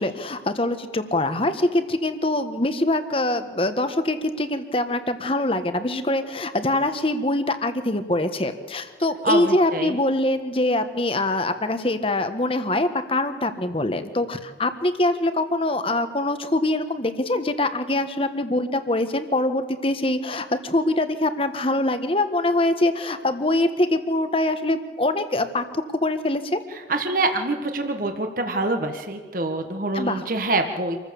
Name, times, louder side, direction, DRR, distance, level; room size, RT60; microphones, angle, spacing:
voice 1, 0.0-25.6 26.0-26.6 29.9-30.3, left 1 dB, 30° left, 9 dB, 1.3 m, -24 dB
voice 2, 9.2-10.0 26.9-31.0, right 2 dB, 50° right, 5 dB, 1.5 m, -25 dB
26.5 x 14.5 x 7.0 m, 1.5 s
head